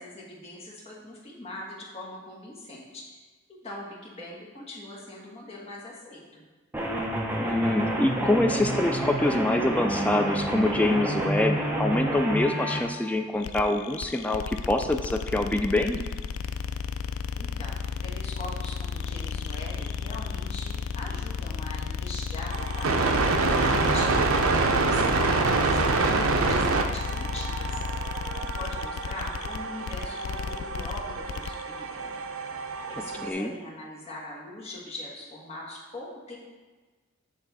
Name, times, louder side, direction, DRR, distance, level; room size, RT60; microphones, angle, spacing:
voice 1, 0.0-3.2 3.5-6.4 17.4-27.8 28.4-32.1 32.9-36.4, left 1 dB, 30° left, -4 dB, 1.3 m, -41 dB
sound 1, 6.7-12.8, right 1 dB, 10° right, 0.7 m, -28 dB
voice 2, 7.4-16.0 33.2-33.5, left 1 dB, 5° left, 5 dB, 0.3 m, -25 dB
sound 2, 13.4-31.6, left 5 dB, 85° left, 0.3 m, -33 dB
sound 3, 22.5-33.3, right 3 dB, 80° right, 0.5 m, -27 dB
8.1 x 3.5 x 4.0 m, 1.3 s
head